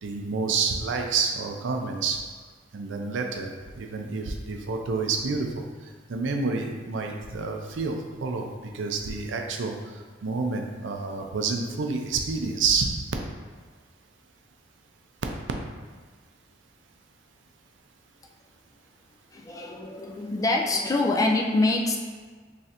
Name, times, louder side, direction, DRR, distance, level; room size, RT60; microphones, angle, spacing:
voice 1, 0.0-2.2 2.7-5.6 6.1-9.9 10.2-13.0, right 4 dB, 75° right, 3 dB, 0.5 m, -29 dB
voice 2, 19.3-22.0, left 2 dB, 20° left, 0 dB, 0.3 m, -25 dB
3.2 x 2.5 x 4.2 m, 1.5 s
head